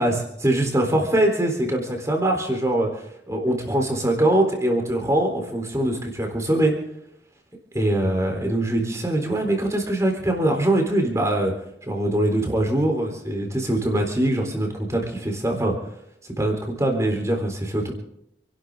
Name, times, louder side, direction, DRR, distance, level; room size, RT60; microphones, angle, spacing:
voice 1, 0.4-6.7 7.7-11.5 11.9-15.7 16.4-17.9, right 1 dB, 15° right, 2 dB, 3.8 m, -23 dB
29.0 x 12.0 x 3.8 m, 0.78 s
head